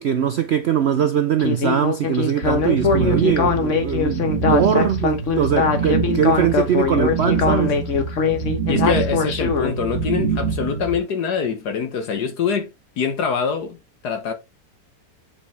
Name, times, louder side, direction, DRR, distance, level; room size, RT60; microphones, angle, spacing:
voice 1, 0.0-7.8, right 8 dB, 70° right, 0.6 m, -21 dB
Speech synthesizer, 1.4-9.7, left 5 dB, 50° left, 1.4 m, -21 dB
sound 1, 2.4-11.0, right 4 dB, 45° right, 1.6 m, -25 dB
voice 2, 8.7-12.7 13.0-13.8 14.0-14.3, left 6 dB, 70° left, 1.6 m, -24 dB
7.2 x 5.1 x 3.3 m
omnidirectional pair, 1.8 m